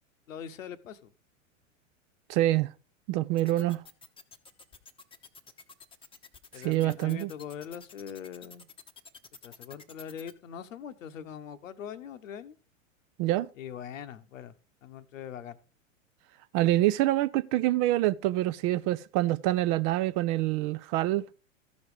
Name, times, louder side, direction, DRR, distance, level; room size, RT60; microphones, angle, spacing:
voice 1, 0.3-1.1 6.5-8.7 9.4-12.5 13.5-14.5 14.8-15.6, left 8 dB, 80° left, 1.0 m, -42 dB
voice 2, 2.3-2.7 3.1-3.8 6.6-7.3 13.2-13.5 16.5-21.2, right 15 dB, 40° right, 0.4 m, -26 dB
sound 1, 3.4-10.3, left 5 dB, 15° left, 0.8 m, -50 dB
13.5 x 5.3 x 4.8 m
hypercardioid pair, 100°, 39 cm